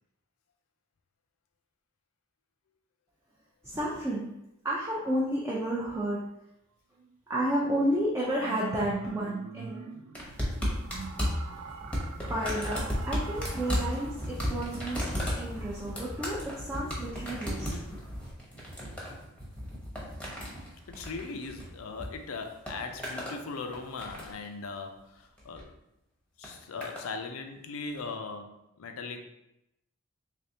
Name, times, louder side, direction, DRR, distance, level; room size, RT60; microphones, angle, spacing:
voice 1, 3.6-4.3 4.6-6.2 7.3-9.9 12.3-17.8, right 1 dB, 15° right, -6 dB, 0.5 m, -31 dB
sound 1, 7.0-7.1 7.8-16.3, right 5 dB, 75° right, 0.3 m, -44 dB
sound 2, 10.1-22.1 22.4-23.4 23.7-24.4 25.4-25.7 26.4-27.1 28.0-28.1, equal, 5° left, 0.8 m, -35 dB
voice 2, 20.9-25.7 26.4-29.2, left 4 dB, 75° left, 5 dB, 0.5 m, -39 dB
3.4 x 3.3 x 2.7 m, 0.86 s
head